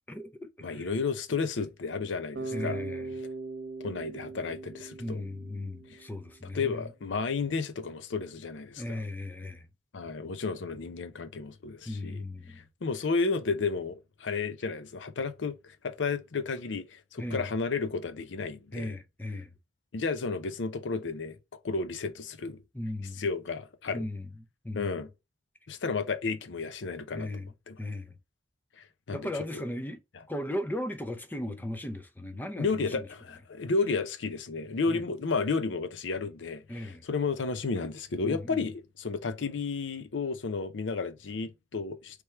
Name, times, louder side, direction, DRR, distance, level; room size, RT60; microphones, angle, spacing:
voice 1, 0.1-0.9 2.5-3.1 5.0-6.9 8.8-9.7 11.9-12.6 17.2-17.5 18.7-19.5 22.7-23.3 23.9-25.1 27.1-27.5 27.8-28.1 29.1-30.0 30.3-33.1 34.9-35.0 36.7-37.0 38.2-38.6, left 1 dB, 10° left, 0.5 m, -37 dB
voice 2, 0.6-2.8 3.8-5.2 5.9-6.0 6.5-9.0 9.9-19.0 19.9-21.4 21.6-22.6 23.2-24.1 24.7-25.1 25.7-27.8 28.8-29.6 32.6-42.2, left 4 dB, 75° left, 0.6 m, -32 dB
Bass guitar, 2.3-6.3, right 3 dB, 65° right, 0.9 m, -40 dB
3.4 x 3.2 x 4.3 m
head